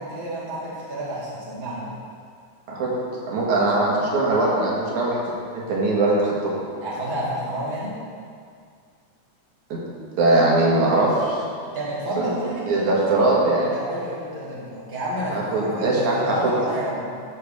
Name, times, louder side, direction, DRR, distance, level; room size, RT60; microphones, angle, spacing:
voice 1, 0.0-1.9 6.8-8.0 11.7-13.3 13.7-17.0, right 1 dB, 20° right, -8 dB, 1.9 m, -30 dB
voice 2, 3.3-5.2 5.5-6.5 9.7-9.8 10.2-11.4 12.2-12.3 12.7-13.6 15.3-16.5, right 2 dB, 80° right, -4 dB, 2.9 m, -21 dB
13.5 x 6.6 x 3.5 m, 2.2 s
omnidirectional pair, 3.4 m